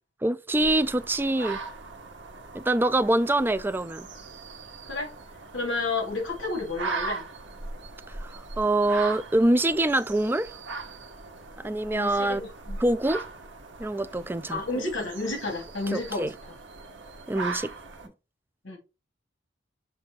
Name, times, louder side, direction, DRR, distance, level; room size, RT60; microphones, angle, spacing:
voice 1, 0.2-1.6 2.5-4.1 8.1-10.5 11.6-12.5 12.8-13.3 13.8-14.8 15.9-16.3 17.3-17.7, right 1 dB, 10° right, 0.3 m, -25 dB
sound 1, 0.5-18.1, right 4 dB, 65° right, 1.3 m, -39 dB
voice 2, 5.5-7.3 11.9-12.8 14.5-16.6 18.6-18.8, left 3 dB, 75° left, 2.8 m, -31 dB
6.9 x 2.7 x 5.5 m
head